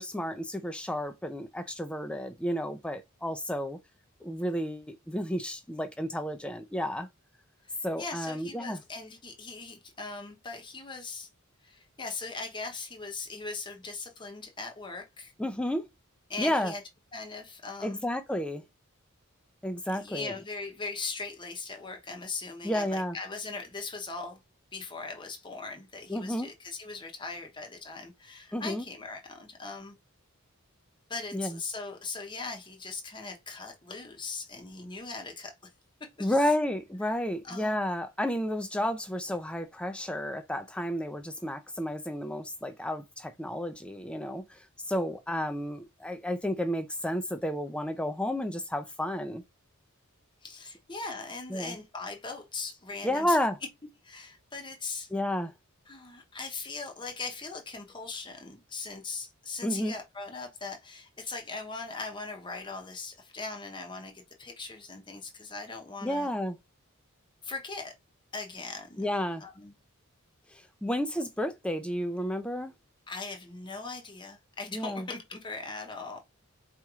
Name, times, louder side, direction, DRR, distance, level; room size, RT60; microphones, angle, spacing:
voice 1, 0.0-3.8 4.2-7.1 7.8-8.8 15.4-15.8 16.4-16.7 17.8-18.6 19.6-20.3 22.6-23.2 26.1-26.5 28.5-28.9 31.3-31.6 36.2-49.4 51.5-51.8 53.0-53.6 55.1-55.5 59.6-59.9 66.0-66.6 69.0-69.5 70.5-72.7 74.7-75.1, equal, 5° left, 0.4 m, -31 dB
voice 2, 7.6-11.3 11.6-15.3 16.3-16.8 17.1-18.0 19.9-24.4 24.7-30.0 31.1-35.5 36.0-36.5 37.4-37.8 50.4-53.4 54.0-55.1 55.9-66.3 67.4-67.9 68.3-69.1 69.4-69.7 73.1-76.2, left 3 dB, 20° left, 0.8 m, -40 dB
4.3 x 3.0 x 2.4 m
head